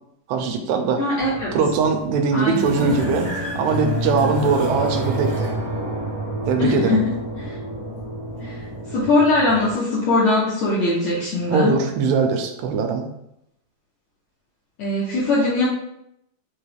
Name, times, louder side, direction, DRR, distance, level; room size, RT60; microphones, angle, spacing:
voice 1, 0.3-1.0 1.5-3.3 3.6-5.5 6.5-7.0 11.5-13.1, right 5 dB, 85° right, 4 dB, 2.5 m, -21 dB
voice 2, 1.0-1.6 2.3-2.6 6.6-7.0 7.4-7.5 8.4-8.6 8.9-11.8 14.8-15.6, left 2 dB, 75° left, -7 dB, 1.6 m, -21 dB
sound 1, 1.2-9.7, right 1 dB, 65° right, 1.0 m, -28 dB
5.8 x 2.3 x 3.4 m, 0.79 s
omnidirectional pair, 4.2 m